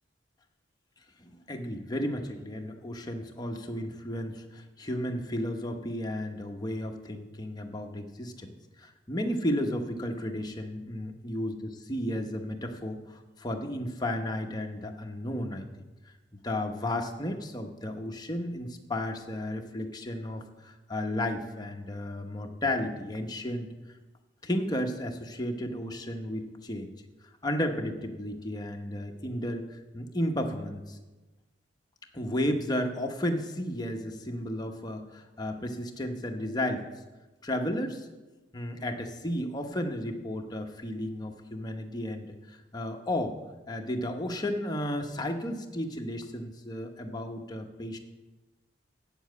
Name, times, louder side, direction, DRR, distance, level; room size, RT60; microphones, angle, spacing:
voice 1, 1.2-15.7 16.4-23.7 24.4-26.9 27.4-31.0 32.1-36.9 37.4-38.1 38.5-43.4 43.7-48.0, left 1 dB, 20° left, 3 dB, 0.9 m, -33 dB
8.2 x 7.1 x 8.1 m, 1.2 s
head